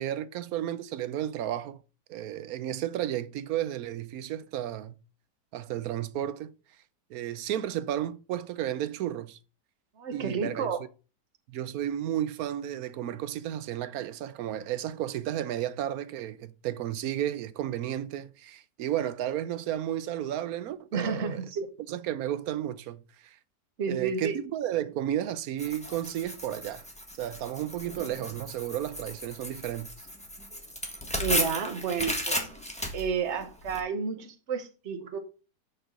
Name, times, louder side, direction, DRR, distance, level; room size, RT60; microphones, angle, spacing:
voice 1, 0.0-1.8 2.1-5.0 5.5-6.5 7.1-9.4 10.1-10.8 11.5-21.4 21.9-23.4 23.9-26.9 27.2-29.9, right 11 dB, 70° right, 0.9 m, -33 dB
voice 2, 10.0-10.8 20.9-21.7 23.8-24.4 31.2-32.5 32.9-35.2, right 6 dB, 45° right, 1.2 m, -31 dB
Tearing, 25.6-33.8, equal, 5° left, 1.2 m, -35 dB
6.5 x 4.5 x 6.3 m
omnidirectional pair, 1.9 m